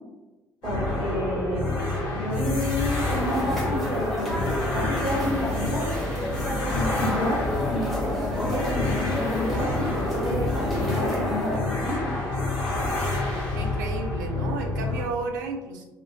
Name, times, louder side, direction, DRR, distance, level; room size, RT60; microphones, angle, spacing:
sound 1, 0.6-15.0, left 2 dB, 55° left, 0.8 m, -28 dB
voice 1, 0.6-1.8 2.1-5.9 6.7-12.2, equal, 20° right, -5 dB, 1.1 m, -30 dB
sound 2, 3.1-11.6, left 1 dB, ahead, 1.1 m, -31 dB
voice 2, 13.5-15.8, right 4 dB, 70° right, 4 dB, 0.3 m, -32 dB
2.5 x 2.1 x 2.7 m, 1.1 s
figure-of-eight pair, 50°, 10 cm